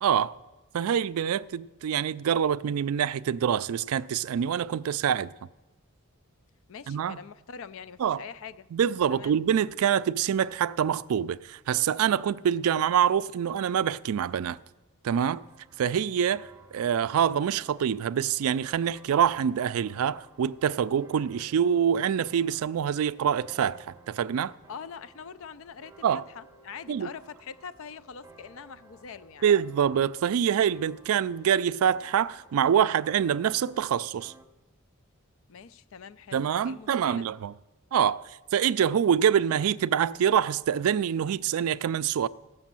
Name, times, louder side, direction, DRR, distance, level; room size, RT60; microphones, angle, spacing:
voice 1, 0.0-0.3 0.7-5.3 6.9-7.2 8.0-8.2 8.7-14.6 15.0-15.4 15.8-24.5 26.0-26.2 26.9-27.1 29.4-34.3 36.3-37.5 37.9-42.3, right 8 dB, 75° right, 0.3 m, -25 dB
voice 2, 6.7-8.7 9.1-9.4 24.7-29.5 35.5-37.3, left 6 dB, 65° left, 0.4 m, -44 dB
sound 1, 15.1-34.4, right 2 dB, 15° right, 0.7 m, -56 dB
14.5 x 6.2 x 7.5 m
head